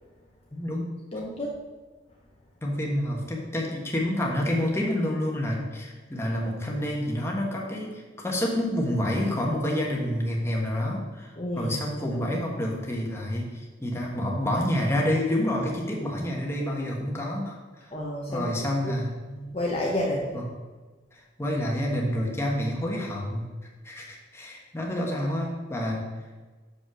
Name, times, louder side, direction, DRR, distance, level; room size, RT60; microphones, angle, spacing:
voice 1, 0.5-0.9 2.6-17.9 18.3-19.1 20.3-20.5 21.1-23.5 23.8-26.1, left 1 dB, 15° left, -2 dB, 1.3 m, -28 dB
voice 2, 1.1-1.6 11.4-11.7 17.9-18.5 18.8-18.9 19.3-20.4, left 1 dB, 30° left, -3 dB, 0.9 m, -30 dB
6.6 x 5.3 x 6.2 m, 1.3 s
head